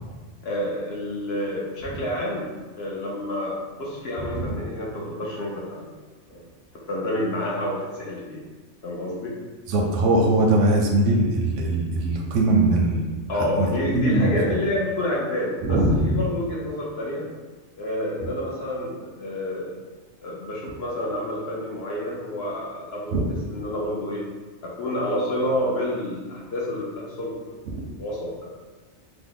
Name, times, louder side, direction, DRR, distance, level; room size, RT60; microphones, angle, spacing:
voice 1, 0.4-5.9 6.3-6.4 6.9-8.4 8.8-9.4 13.3-17.3 17.8-19.8 20.2-23.2 23.5-24.2 24.6-27.6 27.9-28.5, left 1 dB, 65° left, -4 dB, 0.8 m, -29 dB
voice 2, 9.7-13.1 13.3-14.4 15.6-16.2 23.1-23.3 27.7-27.9, right 2 dB, 90° right, 0 dB, 0.9 m, -21 dB
2.8 x 2.0 x 3.8 m, 1.3 s
omnidirectional pair, 1.2 m